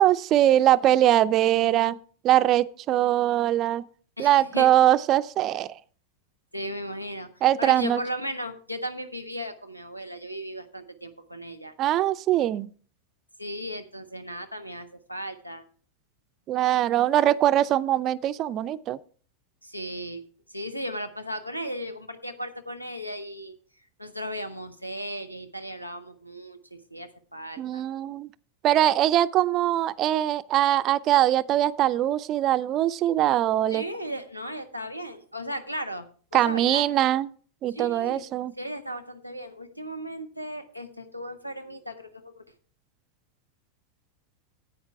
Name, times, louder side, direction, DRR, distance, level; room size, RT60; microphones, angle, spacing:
voice 1, 0.0-2.0 2.2-3.8 4.2-5.7 7.4-8.0 11.8-12.7 16.5-19.0 27.6-28.3 28.6-33.8 36.3-37.3 37.6-38.5, right 12 dB, 35° right, 0.4 m, -22 dB
voice 2, 4.2-4.7 6.5-7.3 7.6-11.7 13.4-15.6 19.6-20.2 20.5-23.5 24.0-27.8 33.7-36.0 36.3-36.8 37.7-38.2 38.6-42.5, equal, 90° left, 1.0 m, -36 dB
10.0 x 8.7 x 4.7 m
figure-of-eight pair, 90°, 0 cm